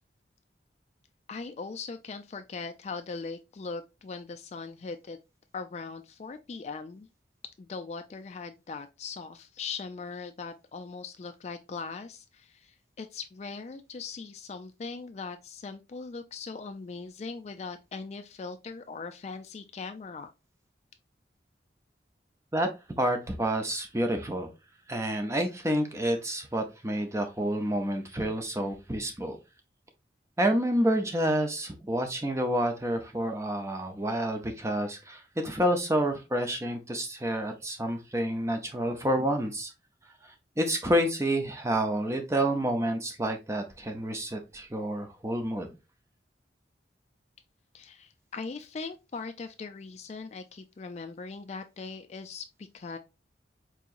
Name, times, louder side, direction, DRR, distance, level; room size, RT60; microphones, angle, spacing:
voice 1, 1.3-5.2 5.5-7.1 7.6-20.3 47.7-53.0, left 4 dB, 35° left, 0.3 m, -40 dB
voice 2, 23.0-24.5 24.9-29.4 30.4-39.7 40.6-45.7, right 1 dB, 15° right, 0.6 m, -29 dB
4.6 x 2.9 x 2.5 m
head